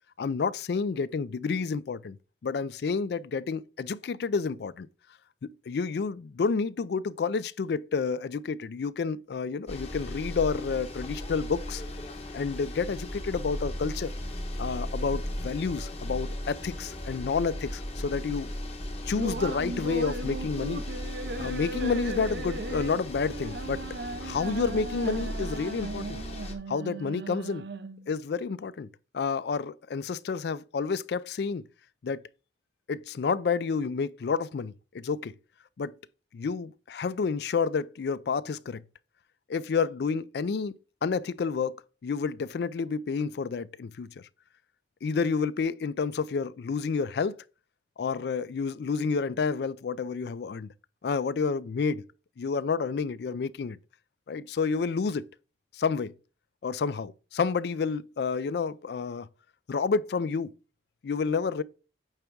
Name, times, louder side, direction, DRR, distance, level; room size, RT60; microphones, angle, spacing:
voice 1, 0.2-2.2 2.4-4.9 5.4-11.8 12.3-14.1 14.6-18.5 19.1-20.8 21.4-23.8 24.2-26.2 26.7-27.6 28.1-28.9 29.1-31.6 32.0-32.2 32.9-35.3 35.8-35.9 36.3-38.8 39.5-40.7 41.0-41.7 42.0-44.2 45.0-47.4 48.0-50.7 51.0-52.1 52.4-53.8 54.3-55.3 55.7-56.1 56.6-59.3 59.7-60.5 61.0-61.6, left 5 dB, 60° left, 0.4 m, -29 dB
sound 1, 9.7-26.5, left 1 dB, 35° left, 1.0 m, -37 dB
sound 2, 19.1-28.1, right 3 dB, 60° right, 0.5 m, -37 dB
8.8 x 3.5 x 4.5 m
head